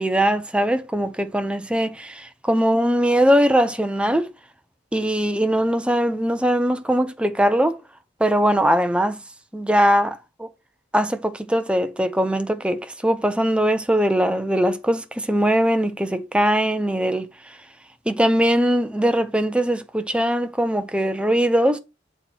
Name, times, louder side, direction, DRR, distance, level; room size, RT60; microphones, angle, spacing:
voice 1, 0.0-4.3 4.9-7.8 8.2-9.2 9.5-10.5 10.9-17.3 18.1-21.8, equal, 5° right, 0.6 m, -21 dB
7.2 x 4.3 x 4.4 m
head